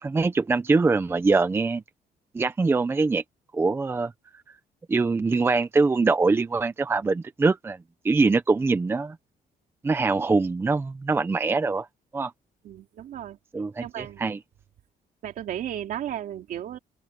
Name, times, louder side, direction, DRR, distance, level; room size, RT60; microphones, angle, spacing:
voice 1, 0.0-1.8 2.3-3.2 3.5-4.1 4.9-7.8 8.0-9.2 9.8-11.9 12.1-12.3 13.5-14.4, right 3 dB, 15° right, 0.6 m, -23 dB
voice 2, 12.6-13.4 13.8-14.2 15.2-16.8, right 10 dB, 65° right, 2.7 m, -34 dB
open air
cardioid pair, 180°, 16 cm